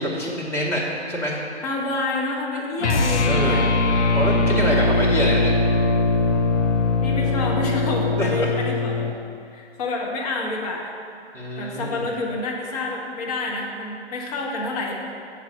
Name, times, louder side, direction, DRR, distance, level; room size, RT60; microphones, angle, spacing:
voice 1, 0.0-1.4 3.2-3.6 4.1-5.5 7.3-7.4 8.2-8.5 11.3-12.0, equal, 5° left, -5 dB, 1.0 m, -25 dB
voice 2, 1.6-3.6 7.0-9.1 9.5-10.9 11.6-15.0, left 2 dB, 35° left, -1 dB, 1.2 m, -28 dB
sound 1, 2.8-9.2, left 3 dB, 80° left, 0.9 m, -21 dB
7.4 x 4.9 x 6.5 m, 2.4 s
figure-of-eight pair, 125°, 35 cm